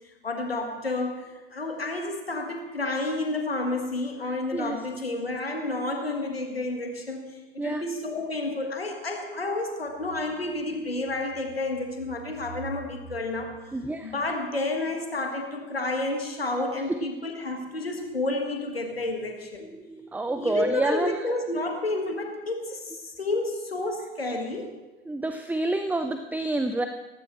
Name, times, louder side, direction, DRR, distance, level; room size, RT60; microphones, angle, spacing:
voice 1, 0.2-7.2 7.5-13.6 14.0-19.7 20.4-24.7, left 2 dB, 90° left, 4 dB, 1.6 m, -30 dB
voice 2, 13.7-14.1 19.9-21.2 25.1-26.9, right 2 dB, 5° right, 8 dB, 0.7 m, -28 dB
18.0 x 15.5 x 3.2 m, 1.1 s
figure-of-eight pair, 70°, 29 cm